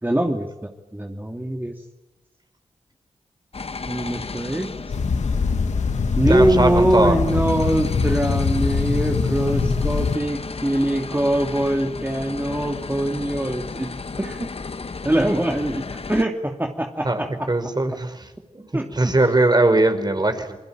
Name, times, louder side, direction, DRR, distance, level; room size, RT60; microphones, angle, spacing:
voice 1, 0.0-1.8 3.8-4.7 6.2-13.9 14.2-14.5 15.0-17.5 18.7-19.1, right 1 dB, 15° right, 3 dB, 2.8 m, -23 dB
sound 1, 3.5-16.2, left 4 dB, 55° left, 1.4 m, -34 dB
sound 2, 4.9-10.2, left 5 dB, 80° left, 2.1 m, -23 dB
voice 2, 6.2-7.2 17.0-18.3 18.5-20.6, right 2 dB, 35° right, 8 dB, 4.8 m, -20 dB
28.5 x 21.5 x 9.1 m, 1.1 s
cardioid pair, 40°, 12 cm